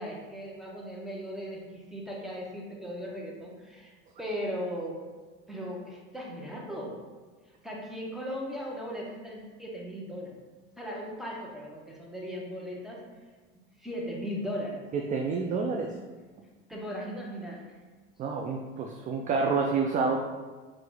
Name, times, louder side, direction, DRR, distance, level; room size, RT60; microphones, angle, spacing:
voice 1, 0.0-3.9 4.2-5.0 5.5-7.0 7.6-10.3 10.8-13.0 13.8-14.8 16.7-17.6, equal, ahead, -3 dB, 1.0 m, -37 dB
voice 2, 14.9-15.9 18.2-20.2, right 4 dB, 25° right, 2 dB, 0.3 m, -28 dB
4.5 x 2.5 x 3.8 m, 1.3 s
hypercardioid pair, 90°, 32 cm